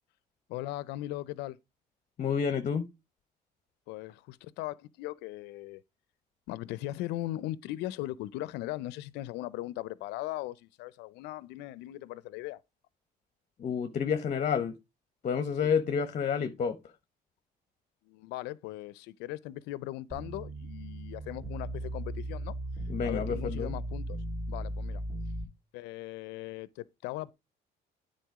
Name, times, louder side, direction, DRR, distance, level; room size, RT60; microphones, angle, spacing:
voice 1, 0.5-1.6 3.9-5.8 6.5-12.6 15.6-15.7 18.1-22.5 23.0-24.2 24.5-25.0 25.7-27.3, left 16 dB, 90° left, 0.5 m, -39 dB
voice 2, 2.2-2.9 13.6-14.7 15.2-16.8 22.9-23.7, left 7 dB, 45° left, 0.9 m, -29 dB
sound 1, 20.1-25.4, right 1 dB, 30° right, 3.1 m, -37 dB
9.3 x 4.3 x 4.7 m
cardioid pair, 110°, 17 cm